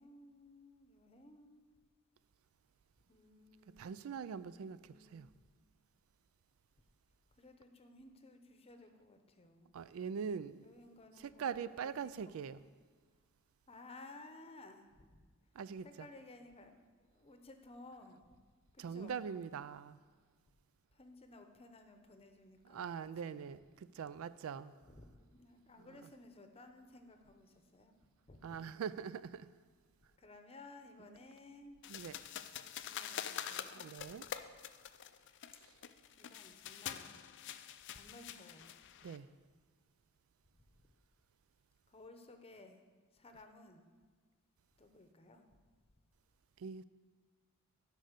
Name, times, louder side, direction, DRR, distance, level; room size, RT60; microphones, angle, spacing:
voice 1, 0.0-1.7 3.1-5.2 7.4-9.7 10.6-11.5 11.8-12.4 13.7-15.1 15.8-16.7 17.0-18.2 18.7-19.3 20.9-23.0 23.2-23.5 24.8-28.0 28.3-28.7 30.2-31.8 32.8-34.1 36.2-37.2 37.9-38.7 41.9-42.8 43.1-43.9 44.8-45.4, left 2 dB, 25° left, 0.8 m, -57 dB
voice 2, 3.8-5.3 9.7-10.6 11.4-12.6 15.5-16.1 18.8-20.0 22.7-24.7 28.4-29.5 31.9-32.1 33.7-34.3 39.0-39.3 46.6-46.8, right 6 dB, 70° right, 0.3 m, -42 dB
sound 1, 31.8-39.2, left 9 dB, 55° left, 0.4 m, -46 dB
11.5 x 5.4 x 6.6 m
head